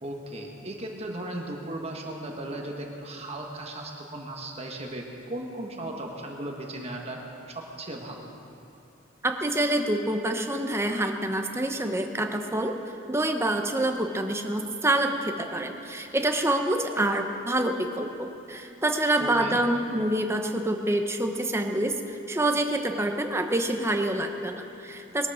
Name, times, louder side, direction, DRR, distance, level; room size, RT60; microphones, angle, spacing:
voice 1, 0.0-7.2 7.5-8.3 19.2-19.6, right 1 dB, 30° right, 1 dB, 1.6 m, -36 dB
voice 2, 9.2-12.7 13.1-25.3, right 1 dB, 15° right, 4 dB, 0.9 m, -27 dB
21.0 x 12.5 x 5.0 m, 2.8 s
head